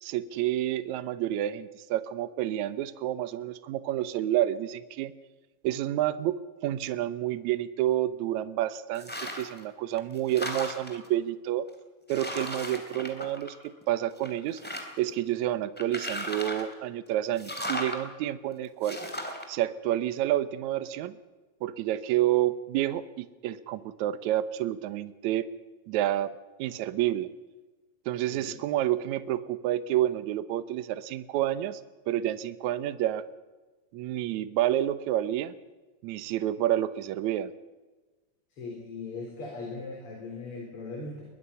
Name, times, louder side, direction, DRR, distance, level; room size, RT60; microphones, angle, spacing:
voice 1, 0.0-5.1 5.6-11.7 12.1-14.6 15.0-19.0 19.5-21.2 21.6-25.5 25.9-27.3 28.1-31.8 32.1-33.3 33.9-35.5 36.0-37.5, right 13 dB, 70° right, 14 dB, 1.9 m, -29 dB
sound 1, 8.9-9.6 10.0-11.1 11.7-11.8 12.1-13.8 14.2-15.1 15.8-16.7 17.4-18.0 18.8-19.4, left 1 dB, 5° left, 2.4 m, -36 dB
voice 2, 38.5-41.2, left 3 dB, 35° left, -1 dB, 4.6 m, -39 dB
22.0 x 21.0 x 5.7 m, 1.2 s
omnidirectional pair, 4.2 m